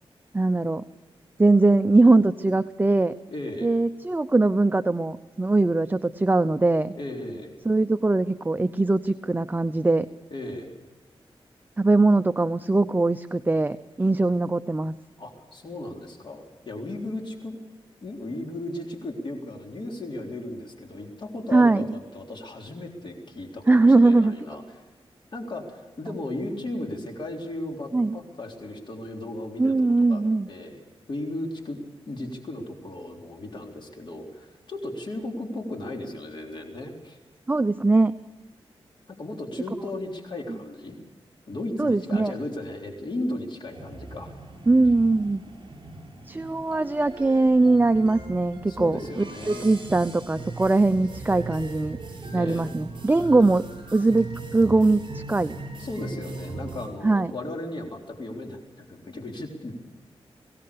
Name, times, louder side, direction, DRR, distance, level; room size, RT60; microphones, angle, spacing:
voice 1, 0.3-0.8 1.4-3.1 3.6-6.9 7.6-10.1 11.8-14.9 21.5-22.0 23.7-24.3 27.9-28.2 29.6-30.5 37.5-38.1 41.8-42.3 44.7-45.4 46.3-52.0 52.3-53.6 53.9-54.3 54.5-55.6 57.0-57.3, right 2 dB, 20° right, 10 dB, 0.6 m, -21 dB
voice 2, 3.3-3.7 7.0-7.6 10.3-10.7 15.2-17.5 18.0-24.8 25.3-30.8 31.1-31.8 32.1-37.2 39.1-41.0 41.5-44.4 48.7-49.7 52.3-52.7 55.8-59.7, left 1 dB, 55° left, 1 dB, 3.7 m, -35 dB
sound 1, 43.7-56.9, right 3 dB, 55° right, 7.7 m, -39 dB
23.0 x 17.5 x 6.9 m, 1.2 s
wide cardioid pair, 100°, 10 cm